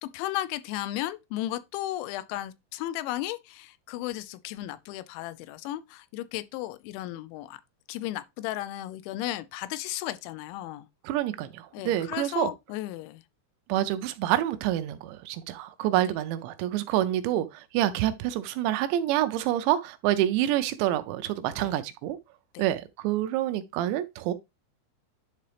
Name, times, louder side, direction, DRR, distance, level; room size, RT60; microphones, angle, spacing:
voice 1, 0.0-7.6 7.9-10.9 11.7-13.2 15.9-16.0 21.6-21.7 22.5-22.7, left 14 dB, 90° left, 3.0 m, -35 dB
voice 2, 11.0-12.5 13.7-22.2 22.6-24.3, right 13 dB, 80° right, 2.8 m, -27 dB
10.5 x 3.8 x 3.3 m
omnidirectional pair, 5.3 m